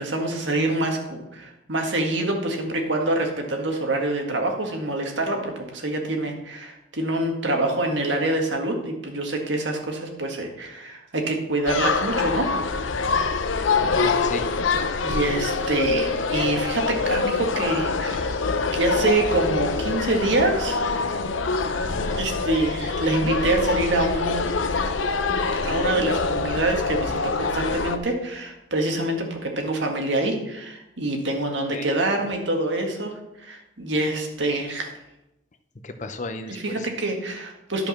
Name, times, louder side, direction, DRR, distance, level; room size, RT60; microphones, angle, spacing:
voice 1, 0.0-12.5 15.0-18.3 18.7-20.9 22.2-24.5 25.6-33.1 33.4-34.9 36.5-37.9, right 2 dB, 70° right, 2 dB, 1.8 m, -26 dB
sound 1, 11.7-28.0, left 4 dB, 85° left, 0.7 m, -25 dB
voice 2, 13.8-14.5 22.0-22.3 31.7-31.9 35.8-36.9, left 3 dB, 40° left, 8 dB, 0.7 m, -34 dB
11.5 x 5.2 x 5.9 m, 0.91 s
head